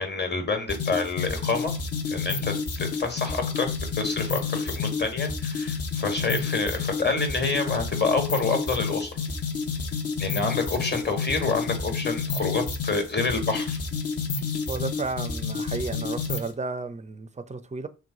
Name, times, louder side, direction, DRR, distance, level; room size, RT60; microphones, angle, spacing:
voice 1, 0.0-1.7 2.1-9.1 10.2-13.8, left 4 dB, 30° left, 1.4 m, -28 dB
sound 1, 0.7-16.5, left 5 dB, 45° left, 0.9 m, -30 dB
voice 2, 14.7-17.9, right 3 dB, 20° right, 0.5 m, -33 dB
2.9 x 2.1 x 3.8 m
hypercardioid pair, 40°, 34 cm